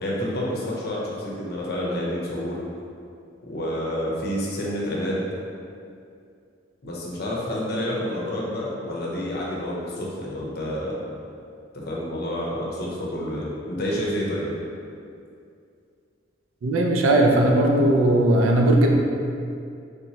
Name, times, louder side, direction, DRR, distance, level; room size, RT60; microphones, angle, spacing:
voice 1, 0.0-2.6 3.5-5.3 6.8-11.0 11.8-14.5, equal, 55° left, -4 dB, 0.7 m, -28 dB
voice 2, 16.6-18.9, right 1 dB, 90° right, 1 dB, 0.4 m, -18 dB
3.3 x 3.0 x 2.7 m, 2.4 s
head